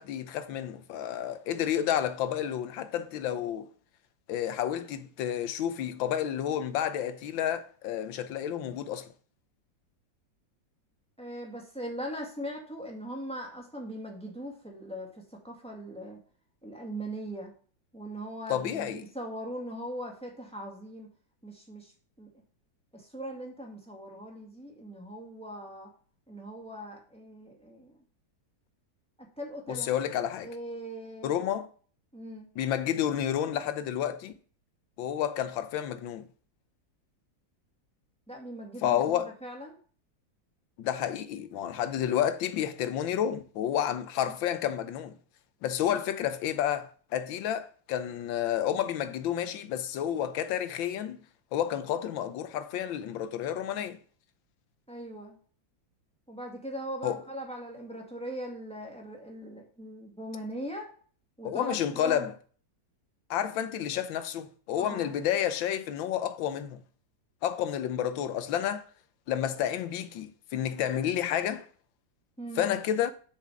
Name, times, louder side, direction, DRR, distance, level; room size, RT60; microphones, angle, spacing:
voice 1, 0.0-3.7 4.3-9.1 18.5-19.0 29.7-30.5 31.2-31.7 32.6-34.3 35.0-36.3 38.8-39.3 40.8-45.1 45.6-51.2 51.5-54.0 57.0-57.2 61.4-62.3 63.3-66.8 67.4-68.8 69.3-71.7 72.6-73.1, left 10 dB, 85° left, 1.5 m, -30 dB
voice 2, 11.2-16.2 16.6-17.5 17.9-21.1 21.4-21.9 22.2-22.3 22.9-25.9 26.3-27.9 29.2-29.9 30.4-31.3 32.1-32.5 38.3-39.8 44.2-44.3 54.9-55.4 56.3-60.9 61.4-61.8 62.0-62.3 64.8-65.1 72.4-72.7, right 1 dB, 5° left, 1.8 m, -40 dB
6.6 x 5.0 x 5.9 m
omnidirectional pair, 2.1 m